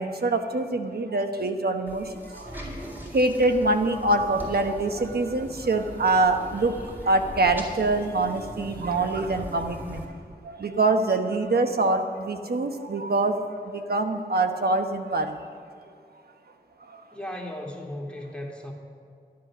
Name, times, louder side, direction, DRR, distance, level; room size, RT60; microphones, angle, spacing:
voice 1, 0.0-10.1 10.4-15.5 16.9-17.0, right 2 dB, 70° right, 6 dB, 1.1 m, -25 dB
sound 1, 1.9-10.1, equal, 10° right, 3.6 m, -40 dB
voice 2, 17.1-18.7, left 1 dB, 5° left, -1 dB, 2.5 m, -36 dB
12.5 x 10.5 x 6.1 m, 2.3 s
cardioid pair, 50°, 17 cm